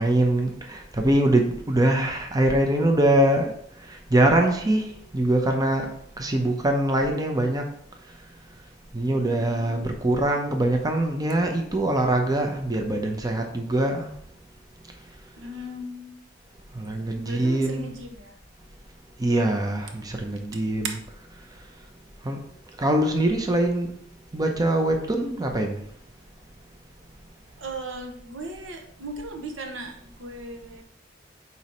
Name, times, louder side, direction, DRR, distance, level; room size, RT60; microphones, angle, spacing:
voice 1, 0.0-3.5 3.9-5.9 6.2-7.6 8.9-14.1 16.7-17.9 19.2-20.9 22.2-22.4 22.8-23.9 24.3-25.8, right 1 dB, 20° right, 3 dB, 0.7 m, -23 dB
voice 2, 9.3-10.0 15.4-16.1 17.1-18.3 20.8-21.0 27.6-30.8, right 2 dB, 85° right, 4 dB, 1.0 m, -37 dB
4.6 x 4.1 x 5.3 m, 0.67 s
head